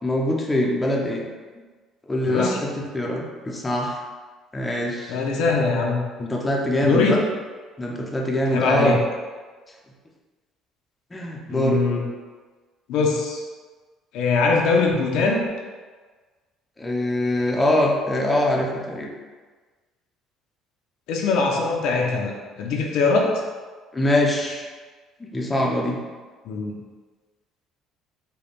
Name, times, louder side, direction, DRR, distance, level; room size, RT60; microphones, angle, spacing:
voice 1, 0.0-1.3 2.1-4.0 4.5-5.2 6.2-7.2 7.8-9.0 11.1-11.8 16.8-19.1 23.9-24.7 25.2-26.0, left 1 dB, 15° left, -1 dB, 0.6 m, -23 dB
voice 2, 2.3-2.6 5.1-6.0 6.8-7.2 8.5-9.0 11.5-12.0 12.9-13.4 14.1-15.5 21.1-23.3 26.4-26.7, left 4 dB, 75° left, 0 dB, 0.6 m, -22 dB
3.9 x 2.3 x 3.5 m, 1.4 s
cardioid pair, 105°, 0 cm